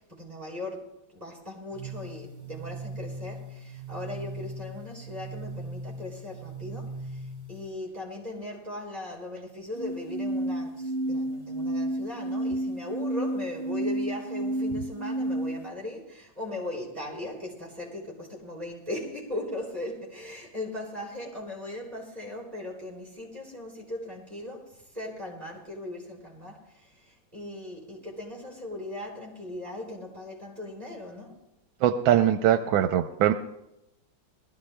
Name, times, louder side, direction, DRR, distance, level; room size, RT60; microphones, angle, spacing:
voice 1, 0.0-7.2 7.5-31.4, left 1 dB, 20° right, -5 dB, 3.9 m, -38 dB
sound 1, 1.7-7.7 9.7-15.7, right 1 dB, 55° right, 2.9 m, -33 dB
voice 2, 31.8-33.3, right 11 dB, 85° right, 7 dB, 1.4 m, -22 dB
22.5 x 14.5 x 2.2 m, 0.86 s
omnidirectional pair, 2.1 m